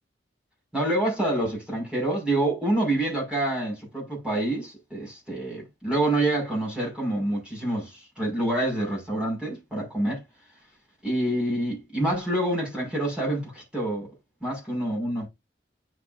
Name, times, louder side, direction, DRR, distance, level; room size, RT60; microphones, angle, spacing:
voice 1, 0.7-10.2 11.0-14.1 14.4-15.3, right 1 dB, 5° right, 6.0 m, -27 dB
9.7 x 6.5 x 2.6 m
head